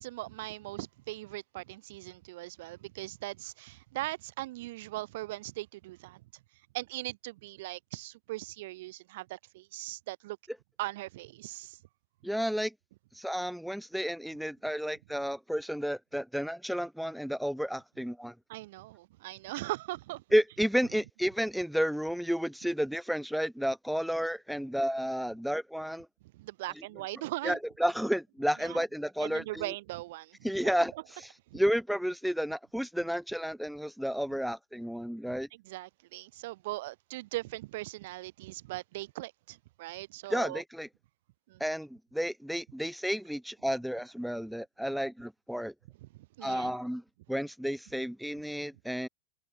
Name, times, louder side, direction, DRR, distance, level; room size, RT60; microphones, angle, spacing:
voice 1, 0.0-6.2 6.7-10.4 10.8-11.8 18.5-20.2 26.3-27.6 28.6-28.8 29.2-30.5 31.5-31.6 35.5-40.6 41.5-41.6 46.0-46.7, right 18 dB, 55° right, 1.1 m, -40 dB
voice 2, 12.2-12.7 13.2-18.3 20.3-26.1 27.4-29.6 30.4-35.5 40.3-40.9 41.6-45.7 46.4-47.0 47.3-49.1, equal, ahead, 0.4 m, -31 dB
figure-of-eight pair, 90°, 0 cm